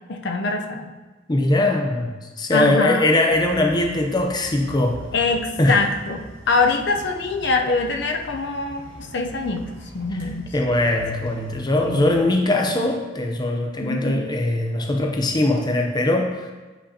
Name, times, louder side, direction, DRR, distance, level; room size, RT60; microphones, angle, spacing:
voice 1, 0.1-0.9 2.5-3.1 5.1-9.7 9.9-10.5 11.9-12.1 12.4-12.6 13.8-14.2, left 3 dB, 60° left, 3 dB, 0.6 m, -24 dB
voice 2, 1.3-5.0 5.6-5.8 10.1-16.5, left 1 dB, 20° left, 3 dB, 0.6 m, -21 dB
sound 1, 3.2-12.3, right 1 dB, 85° right, 1.2 m, -42 dB
8.5 x 5.4 x 2.8 m, 1.3 s
head